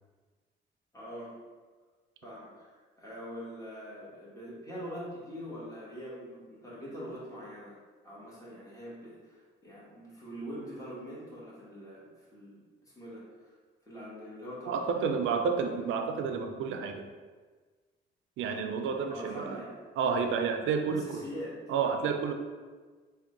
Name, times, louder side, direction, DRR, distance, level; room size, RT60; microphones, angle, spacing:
voice 1, 0.9-1.3 2.2-7.8 8.0-12.6 12.8-13.5 13.9-14.7 15.0-15.8 19.1-19.8 20.9-21.6, equal, 15° left, -7 dB, 1.3 m, -43 dB
voice 2, 14.7-17.1 18.4-19.6 20.0-21.2 21.7-22.3, right 6 dB, 80° right, 5 dB, 0.4 m, -30 dB
3.6 x 2.2 x 3.7 m, 1.4 s
cardioid pair, 90°, 20 cm